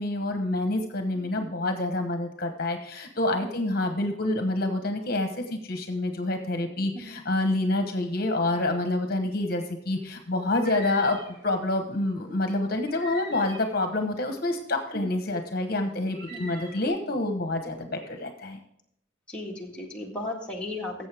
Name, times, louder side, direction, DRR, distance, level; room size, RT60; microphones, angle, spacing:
voice 1, 0.0-18.6, left 2 dB, 50° left, 6 dB, 1.1 m, -27 dB
voice 2, 1.1-1.5 3.4-3.6 6.9-7.1 14.9-15.1 16.3-16.5 19.3-21.1, left 1 dB, 5° left, -3 dB, 1.8 m, -36 dB
sound 1, 10.5-11.5 12.9-13.9 16.1-16.9, right 1 dB, 90° right, 4.1 m, -43 dB
14.5 x 7.5 x 3.5 m, 0.77 s
head